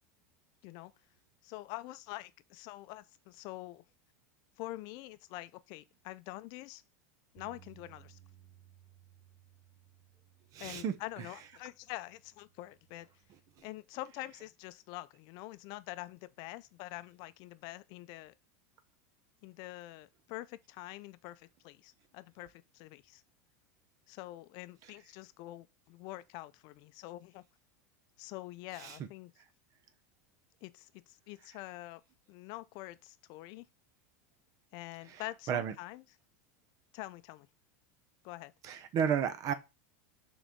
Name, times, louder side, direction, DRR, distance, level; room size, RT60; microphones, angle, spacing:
voice 1, 1.4-3.8 4.6-6.8 7.3-8.2 10.6-13.1 13.6-18.3 19.4-23.2 24.1-27.4 28.2-29.3 30.6-32.0 32.3-33.7 34.7-36.0 36.9-37.5 38.2-38.5, left 17 dB, 55° left, 0.5 m, -46 dB
Bass guitar, 7.4-13.6, right 10 dB, 15° right, 1.1 m, -62 dB
voice 2, 10.5-10.9 13.6-13.7 28.8-29.0 35.1-35.2 35.5-35.7 38.6-39.5, right 8 dB, 45° right, 0.9 m, -32 dB
6.3 x 4.0 x 4.6 m
supercardioid pair, 125°, 9 cm